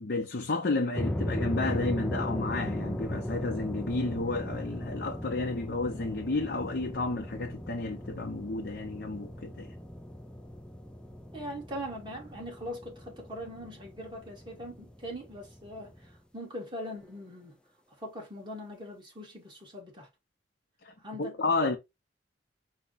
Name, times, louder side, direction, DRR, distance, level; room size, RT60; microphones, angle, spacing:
voice 1, 0.0-9.7 21.2-21.8, left 3 dB, 60° left, 0.6 m, -31 dB
sound 1, 0.9-16.2, left 1 dB, 5° left, 0.3 m, -38 dB
voice 2, 11.3-17.6 18.0-20.1 21.0-21.7, equal, 25° right, 1.6 m, -41 dB
4.8 x 2.2 x 3.9 m
head